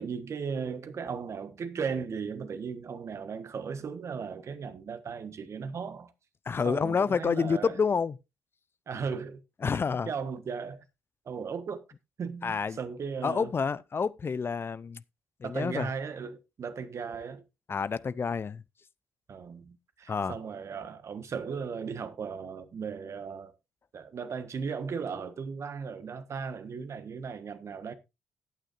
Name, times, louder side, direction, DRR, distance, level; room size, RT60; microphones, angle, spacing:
voice 1, 0.0-6.1 6.6-7.8 8.9-9.4 10.1-10.8 11.2-11.8 12.2-13.5 15.4-17.4 19.3-23.5 23.9-27.9, right 6 dB, 55° right, 1.4 m, -36 dB
voice 2, 6.5-8.2 9.6-10.1 12.4-12.8 13.2-15.0 15.4-15.9 17.7-18.6 20.1-20.3, left 5 dB, 40° left, 0.5 m, -28 dB
14.5 x 8.9 x 2.6 m
hypercardioid pair, 50°, 6 cm